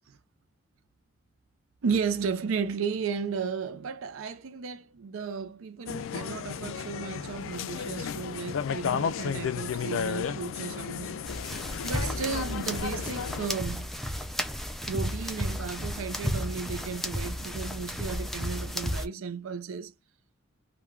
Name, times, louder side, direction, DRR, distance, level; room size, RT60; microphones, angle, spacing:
voice 1, 1.8-11.3 11.8-13.9 14.9-19.9, right 5 dB, 85° right, 0.5 m, -34 dB
sound 1, 5.9-13.5, left 7 dB, 75° left, 0.3 m, -33 dB
sound 2, 11.2-19.1, equal, ahead, 0.3 m, -33 dB
3.2 x 2.2 x 2.3 m
head